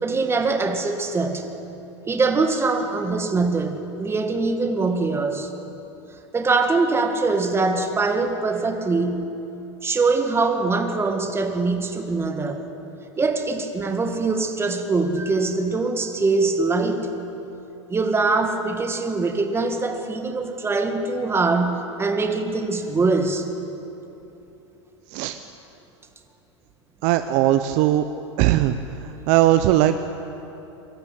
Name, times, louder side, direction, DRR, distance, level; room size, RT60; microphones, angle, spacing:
voice 1, 0.0-1.5 2.1-5.5 6.3-9.3 9.8-12.6 13.2-17.1 17.9-23.5, right 3 dB, 15° right, 5 dB, 2.1 m, -23 dB
voice 2, 27.0-28.0 28.4-28.8 29.3-30.0, right 14 dB, 50° right, 10 dB, 0.8 m, -18 dB
24.0 x 13.5 x 8.8 m, 2.9 s
hypercardioid pair, 110°, 16 cm